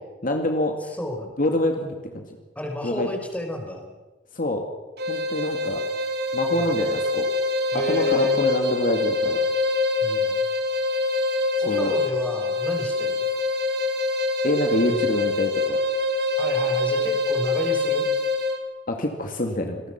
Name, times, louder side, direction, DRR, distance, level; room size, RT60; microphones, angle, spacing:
voice 1, 0.2-0.9 1.4-2.2 2.8-3.1 4.4-4.7 5.1-5.8 6.3-7.3 7.9-9.4 11.7-11.9 14.4-15.8 18.9-19.8, left 1 dB, 50° left, 4 dB, 2.3 m, -25 dB
voice 2, 0.8-1.3 2.5-3.8 6.5-6.7 7.7-8.3 10.0-10.5 11.6-13.2 14.8-15.3 16.3-18.1, left 1 dB, 10° left, 3 dB, 4.5 m, -32 dB
sound 1, 5.0-18.6, left 3 dB, 60° right, 2.6 m, -25 dB
27.0 x 20.0 x 6.0 m, 1.2 s
head